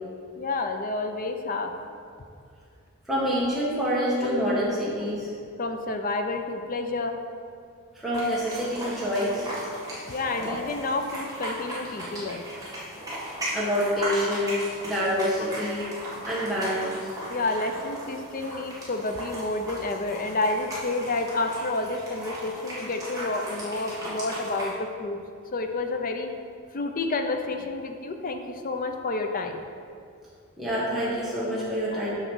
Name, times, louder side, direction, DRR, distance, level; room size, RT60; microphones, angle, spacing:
voice 1, 0.4-1.7 5.6-7.2 10.1-12.4 14.2-14.3 17.3-25.2 25.5-26.3 26.7-29.6 31.9-32.0, left 2 dB, 40° left, 6 dB, 0.5 m, -29 dB
voice 2, 3.1-5.3 7.9-9.5 13.5-15.9 16.2-17.1 30.6-32.1, equal, ahead, -9 dB, 1.4 m, -27 dB
sound 1, 8.1-24.7, right 1 dB, 15° right, 1.7 m, -37 dB
7.9 x 4.0 x 6.2 m, 2.3 s
head